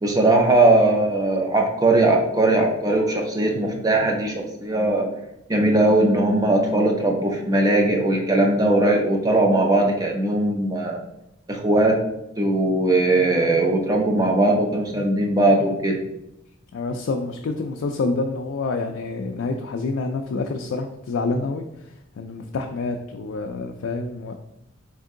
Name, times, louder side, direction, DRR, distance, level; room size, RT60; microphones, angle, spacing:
voice 1, 0.0-5.1 5.5-11.0 11.5-12.0 12.4-16.0, right 2 dB, 20° right, 1 dB, 0.6 m, -19 dB
voice 2, 16.7-21.6 22.2-24.3, left 3 dB, 70° left, 3 dB, 0.3 m, -27 dB
4.3 x 2.7 x 3.7 m, 0.83 s
head